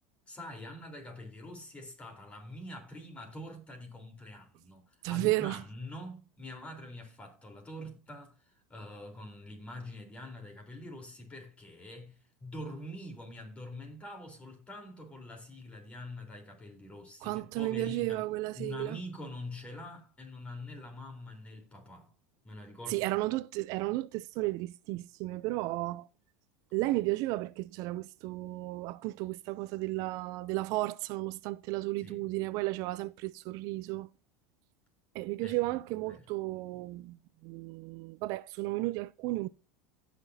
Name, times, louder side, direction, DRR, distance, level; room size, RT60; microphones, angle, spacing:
voice 1, 0.3-18.2 18.6-22.1 22.4-23.1 32.0-32.2 35.4-35.6 36.1-36.3, left 1 dB, 15° left, 3.8 m, -45 dB
voice 2, 5.0-5.6 17.2-19.0 22.9-26.1 26.7-34.1 35.1-37.2 37.4-39.5, right 19 dB, 55° right, 0.4 m, -33 dB
17.0 x 5.9 x 2.7 m
supercardioid pair, 125°, 7 cm